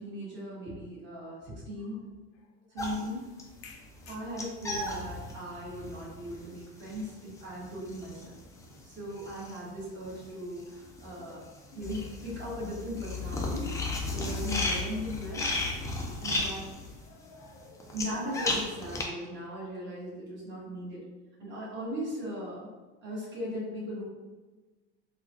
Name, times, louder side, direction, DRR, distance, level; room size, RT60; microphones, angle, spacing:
voice 1, 0.0-2.0 2.7-3.2 4.1-8.4 8.8-11.4 11.7-13.7 14.1-15.5 16.2-16.8 17.9-21.0 21.4-22.7 23.0-24.0, equal, 35° right, -6 dB, 1.4 m, -38 dB
sound 1, 2.8-10.3 10.5-19.1, left 2 dB, 10° left, 0.3 m, -35 dB
voice 2, 3.6-4.2 11.1-11.4 11.7-12.1 12.4-12.5 14.8-14.9 16.4-16.5 17.0-18.1, left 4 dB, 80° left, 2 dB, 0.7 m, -53 dB
3.7 x 2.3 x 2.8 m, 1.2 s
supercardioid pair, 130°, 31 cm